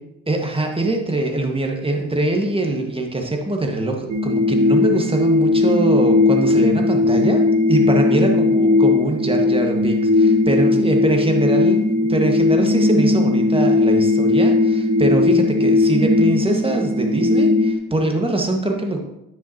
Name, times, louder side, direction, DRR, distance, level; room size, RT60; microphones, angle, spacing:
voice 1, 0.3-11.8 12.1-19.0, right 2 dB, 15° right, 2 dB, 1.8 m, -23 dB
sound 1, 4.1-17.8, left 2 dB, 40° right, 1.4 m, -17 dB
10.0 x 7.5 x 3.0 m, 0.87 s
hypercardioid pair, 45°, 41 cm